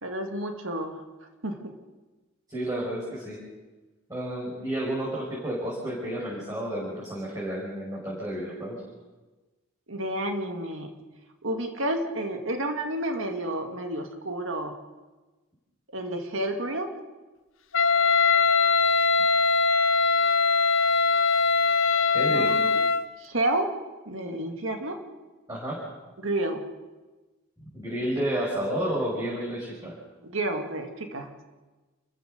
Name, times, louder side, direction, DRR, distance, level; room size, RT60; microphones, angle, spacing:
voice 1, 0.0-1.0 1.4-1.8 9.9-10.9 11.4-14.7 15.9-16.9 22.3-22.8 23.2-23.7 24.1-25.0 26.2-26.6 30.2-31.4, right 1 dB, 65° right, 5 dB, 2.1 m, -30 dB
voice 2, 2.5-3.4 4.1-8.8 22.1-22.5 25.5-25.8 27.7-29.9, right 1 dB, 15° right, -6 dB, 5.6 m, -31 dB
Wind instrument woodwind instrument, 17.7-23.1, left 4 dB, 65° left, 0.8 m, -21 dB
29.0 x 14.5 x 6.7 m, 1.2 s
head